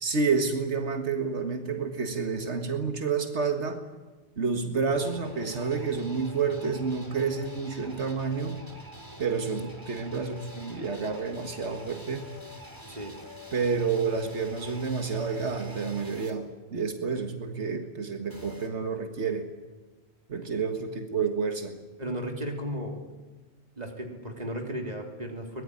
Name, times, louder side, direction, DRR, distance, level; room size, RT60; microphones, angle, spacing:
voice 1, 0.0-3.8 4.4-8.6 9.2-12.3 13.5-19.5 20.3-21.8, right 5 dB, 90° right, 6 dB, 2.0 m, -29 dB
sound 1, 4.9-16.3 18.3-18.7, left 1 dB, 20° right, 3.1 m, -46 dB
voice 2, 22.0-23.0 23.8-25.6, equal, 35° right, 2 dB, 3.6 m, -35 dB
23.0 x 20.5 x 9.9 m, 1.2 s
omnidirectional pair, 1.1 m